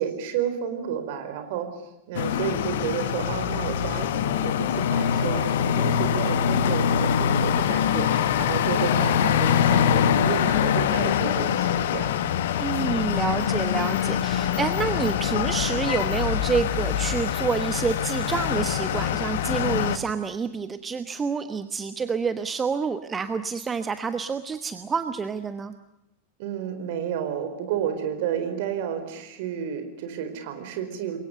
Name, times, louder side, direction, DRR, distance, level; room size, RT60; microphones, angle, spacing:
voice 1, 0.0-1.7 2.1-12.1 26.4-31.2, right 9 dB, 50° right, 7 dB, 4.6 m, -31 dB
sound 1, 2.1-20.0, left 9 dB, 55° left, 1.3 m, -24 dB
voice 2, 12.6-25.7, right 5 dB, 15° right, 10 dB, 1.2 m, -28 dB
28.5 x 23.0 x 6.8 m, 0.88 s
figure-of-eight pair, 90°, 0 cm